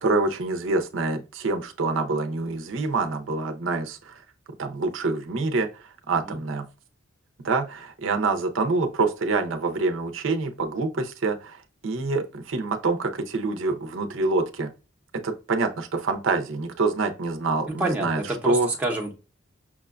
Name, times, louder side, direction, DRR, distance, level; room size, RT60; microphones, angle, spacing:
voice 1, 0.0-4.2 4.6-5.7 6.1-6.7 7.4-14.7 15.2-18.7, right 3 dB, 70° right, 0.6 m, -26 dB
voice 2, 17.8-19.2, right 2 dB, 10° right, 0.7 m, -28 dB
5.9 x 2.2 x 2.3 m
head